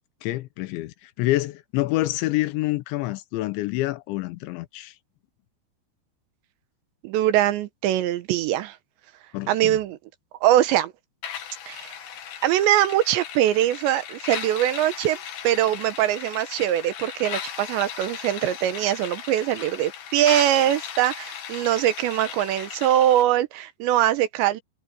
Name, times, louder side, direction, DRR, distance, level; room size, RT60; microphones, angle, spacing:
voice 1, 0.2-4.9 9.3-9.8, left 17 dB, 85° left, 3.1 m, -27 dB
voice 2, 7.0-8.8 9.5-10.0 10.4-10.9 11.7-11.9 12.4-15.2 15.4-24.6, right 12 dB, 80° right, 3.1 m, -22 dB
sound 1, 11.2-23.2, left 9 dB, 60° left, 3.5 m, -37 dB
omnidirectional pair, 5.3 m